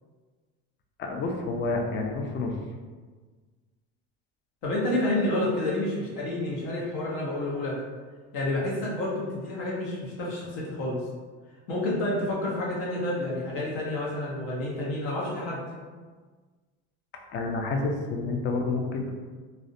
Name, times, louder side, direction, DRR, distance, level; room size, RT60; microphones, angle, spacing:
voice 1, 1.0-2.5 17.3-19.2, left 3 dB, 35° left, 2 dB, 0.4 m, -29 dB
voice 2, 4.6-7.8 8.3-11.0 11.7-15.6, left 1 dB, 70° left, -4 dB, 0.9 m, -29 dB
2.4 x 2.1 x 2.5 m, 1.4 s
supercardioid pair, 110°, 34 cm